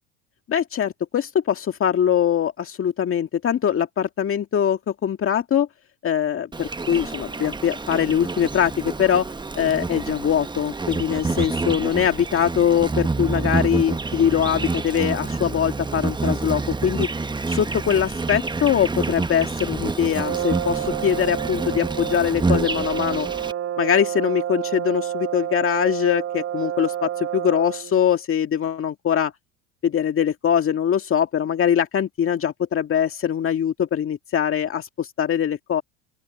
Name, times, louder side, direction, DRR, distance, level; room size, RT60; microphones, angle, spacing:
voice 1, 0.5-5.7 6.0-17.1 17.5-23.3 23.8-29.3 29.8-35.8, left 9 dB, 40° left, 2.0 m, -22 dB
Insect, 6.5-23.5, right 3 dB, 15° right, 1.2 m, -28 dB
Brass instrument, 20.2-28.0, right 11 dB, 40° right, 1.0 m, -29 dB
open air
hypercardioid pair, 80°, 34 cm